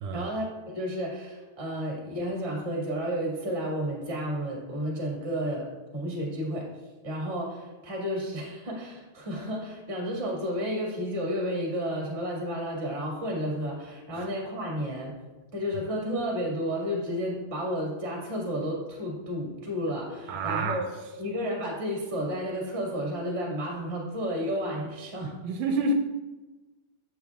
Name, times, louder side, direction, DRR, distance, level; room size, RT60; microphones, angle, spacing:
voice 1, 0.1-0.5 0.7-6.7 7.0-15.1 15.5-25.3, equal, 25° right, 1.7 m, -32 dB
voice 2, 20.3-20.8 25.4-25.9, right 2 dB, 80° right, 2.1 m, -28 dB
7.7 x 7.3 x 3.5 m
omnidirectional pair, 3.8 m